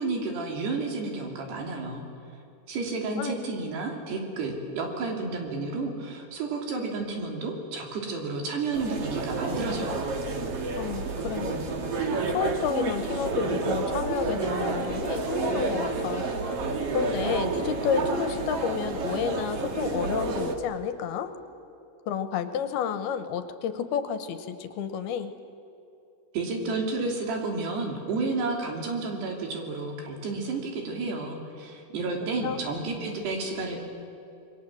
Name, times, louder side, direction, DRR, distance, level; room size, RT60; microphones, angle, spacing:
voice 1, 0.0-2.0 2.7-10.1 26.3-33.8, right 3 dB, 75° right, 2 dB, 5.1 m, -31 dB
sound 1, 8.7-20.6, right 3 dB, 50° right, 2.0 m, -30 dB
voice 2, 10.8-11.7 12.3-16.3 16.9-21.4 22.1-25.3 32.4-32.6, left 7 dB, 75° left, 10 dB, 2.7 m, -30 dB
27.5 x 22.0 x 7.7 m, 2.8 s
omnidirectional pair, 4.9 m